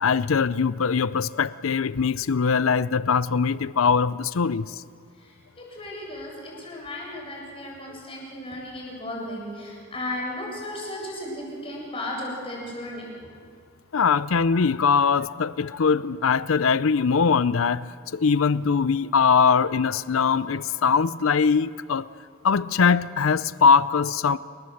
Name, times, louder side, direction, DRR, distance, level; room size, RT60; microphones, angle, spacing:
voice 1, 0.0-4.8 7.9-8.0 13.9-22.1 22.4-24.4, left 5 dB, 75° left, 17 dB, 0.5 m, -22 dB
voice 2, 5.2-13.1, left 1 dB, 25° left, -2 dB, 7.8 m, -35 dB
28.5 x 21.0 x 7.9 m, 2.2 s
head